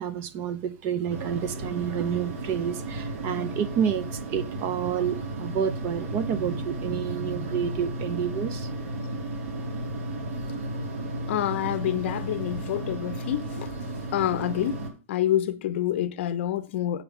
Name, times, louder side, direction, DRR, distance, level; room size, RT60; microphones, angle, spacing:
voice 1, 0.0-8.7, right 8 dB, 30° right, 0.6 m, -29 dB
sound 1, 1.1-14.9, right 2 dB, 80° right, 3.6 m, -34 dB
voice 2, 11.3-13.7 14.1-14.8 15.1-17.0, left 12 dB, 55° left, 0.8 m, -27 dB
8.2 x 5.5 x 6.0 m
supercardioid pair, 170°, 8 cm